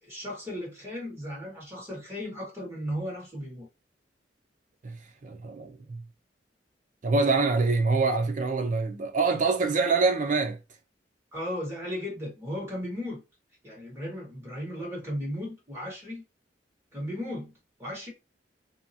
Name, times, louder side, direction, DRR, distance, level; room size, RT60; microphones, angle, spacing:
voice 1, 0.0-3.7 11.3-13.2 13.6-16.2 16.9-17.5 17.8-18.1, equal, 15° right, 1.4 m, -35 dB
voice 2, 4.8-6.0 7.0-10.6, right 3 dB, 45° right, 0.5 m, -25 dB
2.8 x 2.3 x 2.7 m
head